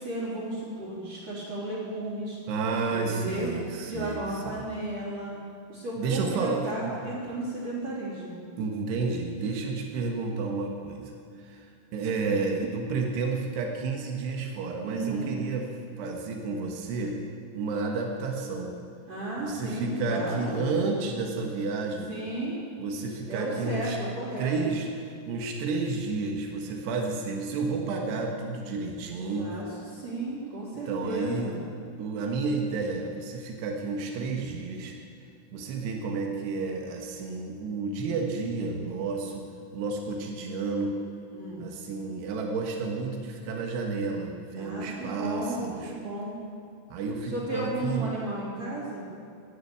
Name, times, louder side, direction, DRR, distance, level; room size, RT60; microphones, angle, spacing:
voice 1, 0.0-2.4 2.9-3.5 3.9-5.3 5.7-8.4 14.8-15.3 19.1-20.6 22.1-22.6 23.3-24.8 29.4-29.7 29.9-31.6 41.3-41.6 44.6-46.4 47.3-49.1, right 1 dB, 40° right, -6 dB, 4.1 m, -34 dB
voice 2, 2.5-4.6 6.0-7.0 8.6-15.7 16.0-17.2 17.5-18.7 19.4-22.1 22.8-24.0 24.4-24.9 25.3-29.6 30.9-31.6 32.0-35.0 35.5-39.5 39.7-41.0 41.6-45.9 46.9-48.1, right 4 dB, 85° right, 2 dB, 3.6 m, -31 dB
15.5 x 10.5 x 8.5 m, 2.5 s
omnidirectional pair, 4.8 m